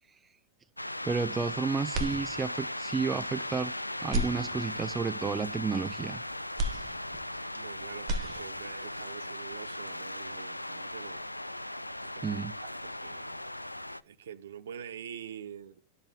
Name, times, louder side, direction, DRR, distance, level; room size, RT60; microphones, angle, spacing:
sound 1, 0.8-14.0, left 1 dB, 85° left, 0.4 m, -38 dB
voice 1, 1.0-3.8 4.0-6.2 12.2-12.5, right 5 dB, 15° right, 0.4 m, -31 dB
sound 2, 1.9-2.8 3.3-3.4 4.0-5.1 6.6-7.7 7.9-8.9, right 1 dB, 35° right, 1.3 m, -34 dB
voice 2, 7.5-11.3 12.1-13.4 14.0-15.8, right 9 dB, 65° right, 0.7 m, -45 dB
12.5 x 6.8 x 2.6 m
figure-of-eight pair, 90°, 0 cm